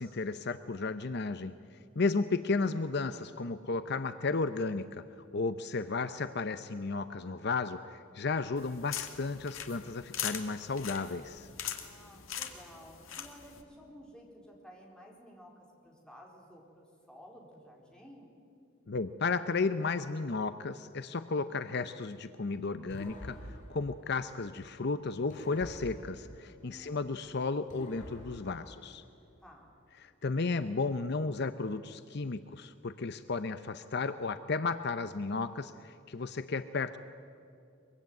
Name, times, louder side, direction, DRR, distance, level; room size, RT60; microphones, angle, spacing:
voice 1, 0.0-1.5 2.0-5.0 5.3-11.5 18.9-23.4 23.7-29.0 30.0-37.0, left 4 dB, 55° left, 11 dB, 0.7 m, -33 dB
sound 1, 8.6-13.6, left 9 dB, 90° left, 2.2 m, -41 dB
voice 2, 11.8-18.4 26.6-27.1 29.4-29.8, equal, 5° left, -1 dB, 4.2 m, -54 dB
sound 2, 22.9-24.8 25.3-27.2 27.7-29.4, equal, 40° left, 5.8 m, -48 dB
23.5 x 23.0 x 9.4 m, 2.5 s
head